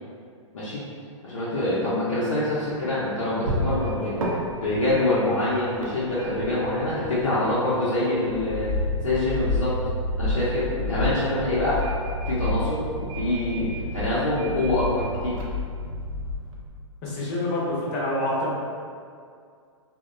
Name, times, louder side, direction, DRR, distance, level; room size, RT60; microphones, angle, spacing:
voice 1, 1.2-4.2 4.6-8.7 9.0-9.7 10.2-11.8 12.3-15.4, left 2 dB, 80° left, -10 dB, 0.7 m, -25 dB
sound 1, 2.2-16.6, equal, 80° right, 0.6 m, -37 dB
sound 2, 8.3-16.7, left 1 dB, 20° right, 0.8 m, -30 dB
voice 2, 17.0-18.6, left 1 dB, 35° left, -6 dB, 0.7 m, -27 dB
2.8 x 2.1 x 2.4 m, 2.3 s
hypercardioid pair, 125°, 17 cm